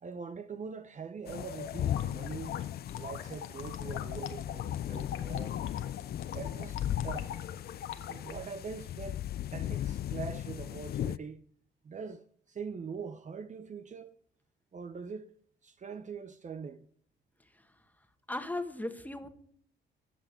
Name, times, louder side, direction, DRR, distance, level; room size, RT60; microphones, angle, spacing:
voice 1, 0.0-2.6 2.9-5.6 6.3-7.3 8.1-9.2 9.5-11.4 11.8-14.1 14.7-15.3 15.6-16.8, right 5 dB, 40° right, 0.8 m, -43 dB
sound 1, 1.3-8.3, left 9 dB, 80° left, 1.5 m, -43 dB
sound 2, 1.3-11.2, left 11 dB, 55° left, 0.4 m, -37 dB
voice 2, 18.3-19.3, left 2 dB, 10° left, 1.6 m, -36 dB
16.0 x 5.9 x 8.4 m
cardioid pair, 90°, 20 cm